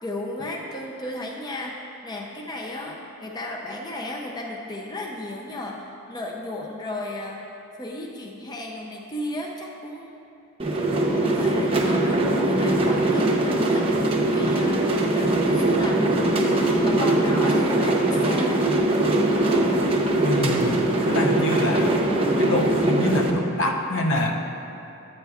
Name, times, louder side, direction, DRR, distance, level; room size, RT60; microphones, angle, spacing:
voice 1, 0.0-7.5 7.8-10.3 11.2-13.9 14.2-18.7, left 1 dB, 20° left, -1 dB, 0.5 m, -35 dB
sound 1, 10.6-23.3, right 1 dB, 25° right, 0.7 m, -21 dB
voice 2, 20.2-20.8 21.1-22.0 22.4-24.4, left 1 dB, 60° left, 2 dB, 0.7 m, -26 dB
10.5 x 8.9 x 2.3 m, 2.9 s
head